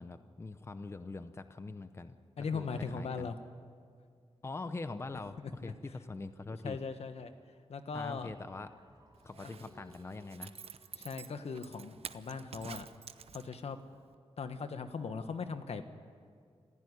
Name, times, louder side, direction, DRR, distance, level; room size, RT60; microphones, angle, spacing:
voice 1, 0.0-3.3 4.4-6.8 7.9-8.7 9.2-10.5, left 3 dB, 25° left, 10 dB, 0.7 m, -43 dB
voice 2, 2.4-3.4 5.6-5.7 6.6-7.3 7.7-8.3 11.0-12.9 13.3-13.8 14.4-15.8, left 5 dB, 80° left, 9 dB, 1.4 m, -39 dB
sound 1, 8.2-12.2, right 2 dB, 35° right, 4.0 m, -63 dB
Zipper (clothing), 9.2-13.8 14.1-14.2, right 7 dB, 70° right, 0.8 m, -49 dB
26.0 x 15.5 x 9.8 m, 2.1 s
wide cardioid pair, 175°, 10 cm